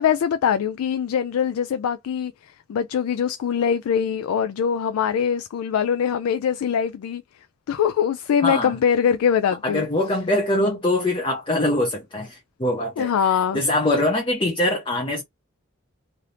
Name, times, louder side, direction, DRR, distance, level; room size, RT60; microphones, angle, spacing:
voice 1, 0.0-2.3 2.7-7.2 7.7-9.8 13.0-13.6, left 8 dB, 85° left, 0.3 m, -22 dB
voice 2, 8.4-8.7 9.6-13.1 13.5-15.2, left 1 dB, 25° left, 0.5 m, -23 dB
2.7 x 2.5 x 3.2 m
head